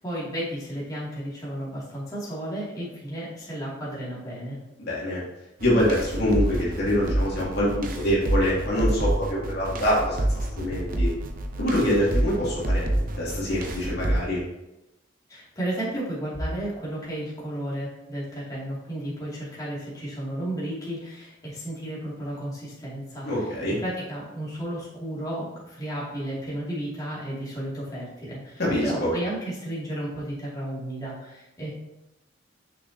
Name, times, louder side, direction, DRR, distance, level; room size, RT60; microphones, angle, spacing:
voice 1, 0.0-4.6 15.3-23.3 23.8-31.7, right 1 dB, 20° left, -8 dB, 2.3 m, -33 dB
voice 2, 4.8-5.2 5.6-10.3 10.6-11.1 11.6-14.4 23.2-23.8 28.6-29.1, equal, 60° left, -6 dB, 2.3 m, -25 dB
sound 1, 5.6-14.2, right 1 dB, 45° right, 0.7 m, -28 dB
6.5 x 6.1 x 2.8 m, 0.93 s
head